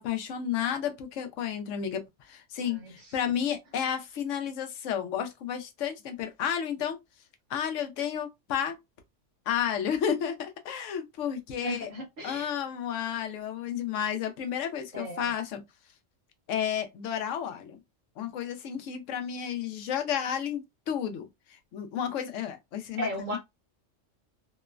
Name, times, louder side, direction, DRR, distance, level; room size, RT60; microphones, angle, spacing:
voice 1, 0.0-7.0 7.5-8.8 9.5-11.9 12.2-15.6 16.5-17.8 18.2-21.3 21.7-23.4, left 8 dB, 80° left, 0.9 m, -32 dB
voice 2, 2.6-3.4 11.6-12.5 14.9-15.3 22.9-23.4, equal, 45° right, 1.0 m, -36 dB
3.0 x 2.0 x 2.3 m
omnidirectional pair, 1.3 m